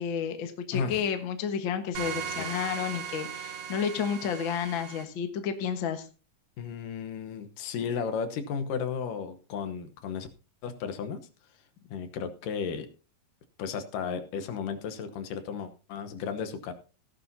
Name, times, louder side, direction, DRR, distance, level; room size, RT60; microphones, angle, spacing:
voice 1, 0.0-6.1, left 7 dB, 55° left, 7 dB, 1.5 m, -31 dB
voice 2, 0.7-1.0 2.4-2.5 6.6-10.3 10.6-11.3 11.9-12.9 13.6-16.7, left 6 dB, 75° left, 8 dB, 2.6 m, -34 dB
sound 1, 1.9-5.0, right 8 dB, 65° right, 2.5 m, -37 dB
17.0 x 11.0 x 2.8 m, 0.34 s
omnidirectional pair, 4.0 m